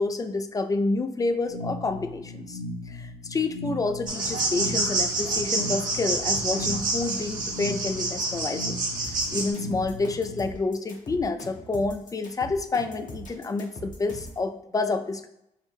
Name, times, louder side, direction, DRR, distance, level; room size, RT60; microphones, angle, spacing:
voice 1, 0.0-2.6 2.9-8.8 9.3-15.3, left 3 dB, 20° left, 8 dB, 0.4 m, -28 dB
sound 1, 1.5-10.5, left 1 dB, 75° left, 0.9 m, -38 dB
sound 2, 4.1-9.5, right 2 dB, 55° right, 1.3 m, -28 dB
sound 3, 9.0-14.4, equal, 50° left, 1.0 m, -41 dB
5.6 x 2.0 x 3.4 m, 0.83 s
hypercardioid pair, 50°, 17 cm